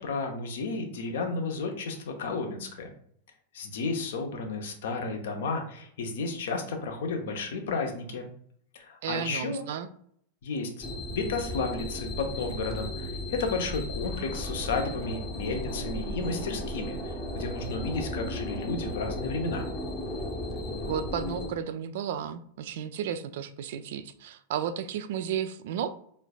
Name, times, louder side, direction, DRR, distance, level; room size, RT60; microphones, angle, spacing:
voice 1, 0.0-2.9 3.5-8.3 8.7-9.6 10.4-10.8 11.1-19.7, left 3 dB, 60° left, 4 dB, 0.8 m, -32 dB
voice 2, 9.0-9.9 20.9-25.9, right 8 dB, 55° right, 11 dB, 0.3 m, -33 dB
sound 1, 10.8-21.5, left 1 dB, 20° left, 0.8 m, -35 dB
3.8 x 3.2 x 2.3 m, 0.63 s
figure-of-eight pair, 90°, 0 cm